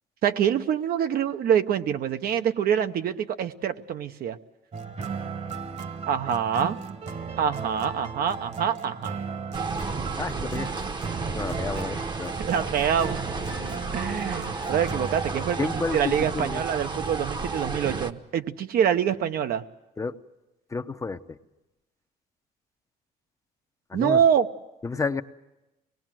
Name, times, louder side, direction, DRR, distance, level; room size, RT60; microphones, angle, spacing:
voice 1, 0.2-4.4 6.1-6.8 7.4-9.1 12.4-13.2 13.9-15.6 15.9-19.6 23.9-24.5, right 8 dB, 60° right, 9 dB, 0.9 m, -25 dB
sound 1, 4.7-17.0, right 5 dB, 40° right, 1.4 m, -36 dB
sound 2, 9.5-18.1, right 4 dB, 25° right, 1.0 m, -32 dB
voice 2, 10.2-10.7 11.3-12.4 15.6-16.6 20.0-20.2 20.7-21.4 23.9-24.2 24.8-25.2, left 4 dB, 20° left, 9 dB, 0.8 m, -31 dB
24.5 x 19.5 x 7.6 m, 0.97 s
cardioid pair, 110°, 17 cm